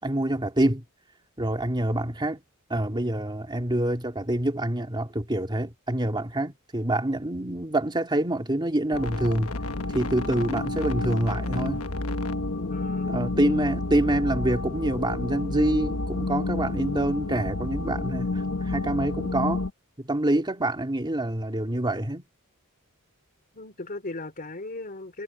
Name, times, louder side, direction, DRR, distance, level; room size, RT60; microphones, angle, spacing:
voice 1, 0.0-0.8 1.4-2.4 2.7-9.5 9.9-11.8 13.1-19.7 20.0-22.2, right 1 dB, 20° right, 2.6 m, -26 dB
sound 1, 8.9-19.7, left 2 dB, 70° left, 1.4 m, -30 dB
voice 2, 12.5-13.8 23.5-25.2, left 2 dB, 40° left, 3.8 m, -37 dB
head